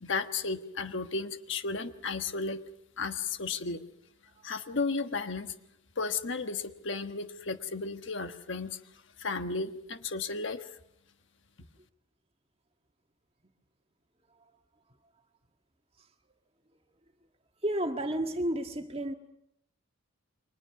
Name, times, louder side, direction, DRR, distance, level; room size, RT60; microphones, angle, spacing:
voice 1, 0.0-2.6 3.0-3.8 4.4-5.5 6.0-8.8 9.2-10.7, left 4 dB, 60° left, 1.3 m, -34 dB
voice 2, 17.6-19.1, right 1 dB, 25° right, 1.7 m, -31 dB
30.0 x 24.0 x 6.0 m
head